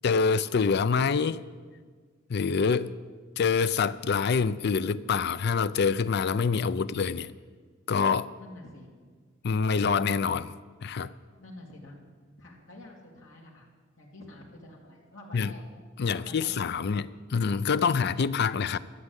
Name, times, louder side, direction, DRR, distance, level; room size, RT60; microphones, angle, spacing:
voice 1, 0.0-1.4 2.3-2.9 3.4-7.3 7.9-8.3 9.4-10.5 10.8-11.1 15.3-15.5 16.0-18.8, left 5 dB, 55° left, 15 dB, 0.4 m, -26 dB
voice 2, 8.4-8.9 11.4-12.0 12.4-13.7 14.0-15.6 16.0-16.5 16.8-16.9, left 1 dB, 80° left, -2 dB, 3.0 m, -48 dB
13.0 x 7.8 x 8.1 m, 1.5 s
head